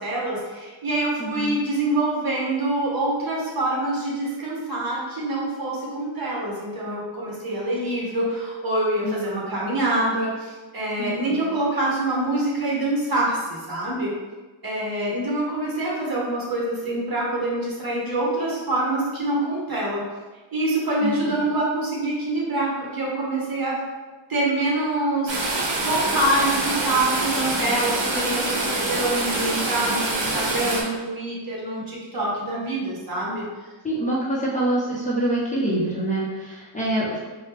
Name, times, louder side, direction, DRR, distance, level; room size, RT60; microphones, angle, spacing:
voice 1, 0.0-14.1 14.6-20.0 20.5-23.8 24.3-33.5, right 1 dB, 45° right, -4 dB, 1.3 m, -25 dB
voice 2, 1.2-1.6 9.0-9.4 11.0-11.4 21.0-21.3 31.7-31.8 33.8-37.2, right 1 dB, 15° left, -6 dB, 0.8 m, -26 dB
sound 1, 25.3-30.8, right 2 dB, 65° right, 1.0 m, -25 dB
4.2 x 2.3 x 3.3 m, 1.3 s
cardioid pair, 85°, 48 cm